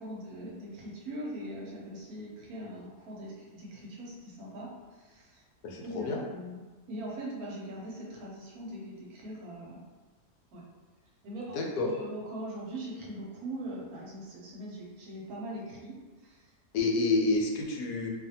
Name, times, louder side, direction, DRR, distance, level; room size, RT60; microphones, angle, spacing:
voice 1, 0.0-5.4 5.8-9.8 10.5-10.6 11.2-16.0 16.2-16.5, right 1 dB, 70° right, -4 dB, 1.1 m, -41 dB
voice 2, 5.6-6.2 11.5-11.9 16.7-18.1, left 3 dB, 80° left, 0 dB, 1.1 m, -28 dB
2.6 x 2.5 x 2.7 m, 1.3 s
omnidirectional pair, 1.7 m